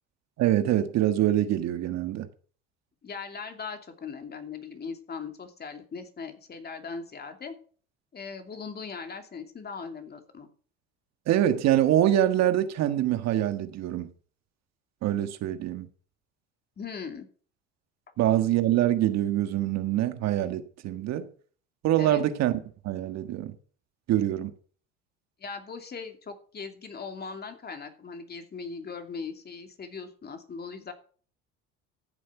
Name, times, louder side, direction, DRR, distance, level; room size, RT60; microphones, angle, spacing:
voice 1, 0.4-2.3 11.3-14.1 15.0-15.9 18.2-21.3 21.8-22.6 22.8-23.5 24.1-24.5, right 12 dB, 60° right, 1.6 m, -25 dB
voice 2, 3.0-7.5 8.1-10.5 16.8-17.3 22.0-22.2 25.4-30.9, left 5 dB, 35° left, 2.8 m, -39 dB
14.0 x 7.7 x 5.9 m
supercardioid pair, 90°, 30 cm